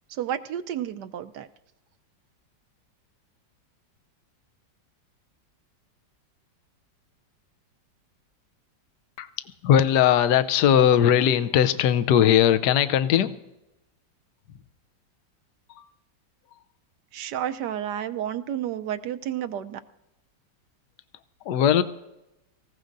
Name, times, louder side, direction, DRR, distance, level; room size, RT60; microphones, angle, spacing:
voice 1, 0.1-1.5 17.1-19.8, right 10 dB, 75° right, 10 dB, 1.2 m, -31 dB
voice 2, 9.2-13.4 15.7-15.9 21.4-21.8, left 9 dB, 70° left, 11 dB, 1.2 m, -20 dB
24.5 x 15.5 x 2.6 m, 0.94 s
omnidirectional pair, 1.9 m